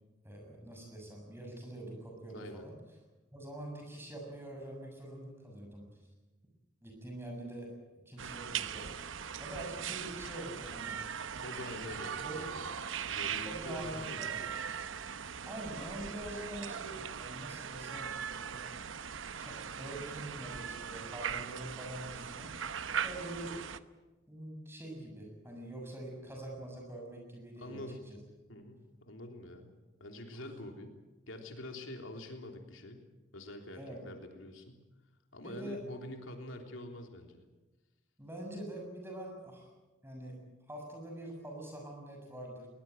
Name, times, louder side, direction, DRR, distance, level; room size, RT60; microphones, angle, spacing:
voice 1, 0.2-2.7 3.3-5.8 6.8-7.7 8.0-8.9 9.4-11.0 11.3-11.4 12.2-12.4 13.4-14.3 15.4-18.9 19.4-22.7 23.0-23.6 24.3-28.2 33.7-34.0 35.4-35.8 38.2-39.7 40.0-40.4 40.7-42.7, right 1 dB, 10° right, 1 dB, 6.8 m, -45 dB
voice 2, 2.3-2.7 11.4-12.7 13.1-14.5 27.6-28.1 28.5-29.7 30.0-31.0 31.3-33.1 33.3-34.9 35.3-37.4, left 1 dB, 90° left, 3 dB, 3.4 m, -46 dB
sound 1, 8.2-23.8, right 7 dB, 80° right, 0.9 m, -40 dB
21.5 x 20.0 x 9.1 m, 1.1 s
head